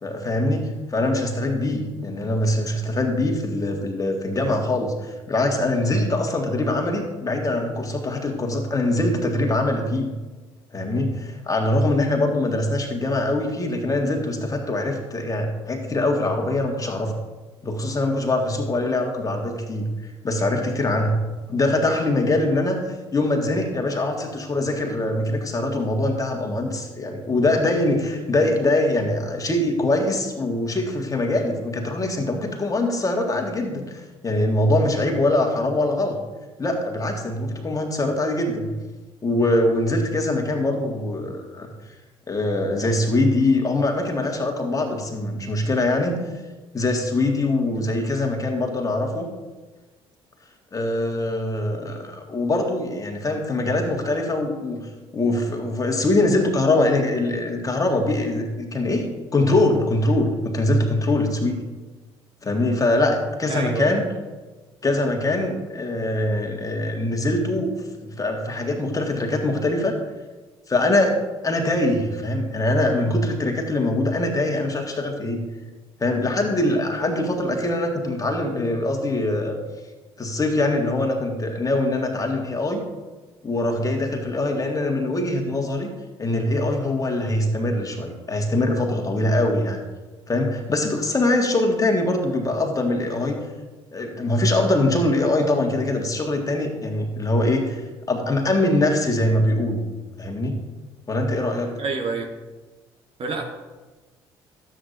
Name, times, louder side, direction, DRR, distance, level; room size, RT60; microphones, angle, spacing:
voice 1, 0.0-10.1 10.7-17.1 17.6-19.9 20.2-21.2 21.5-22.8 23.1-36.2 36.6-38.7 39.2-41.7 42.3-46.2 46.7-49.3 50.7-59.1 59.3-61.6 62.4-64.1 64.8-67.7 68.2-70.0 70.7-75.5 76.0-79.6 80.2-82.8 83.4-85.9 86.2-89.8 90.3-93.3 93.9-97.8 98.1-99.8 100.2-100.6 101.1-101.7, left 2 dB, 25° left, 2 dB, 1.8 m, -23 dB
voice 2, 63.5-63.9 101.8-102.3 103.2-103.4, right 4 dB, 45° right, 3 dB, 1.4 m, -27 dB
12.5 x 8.1 x 2.7 m, 1.3 s
figure-of-eight pair, 50°, 14 cm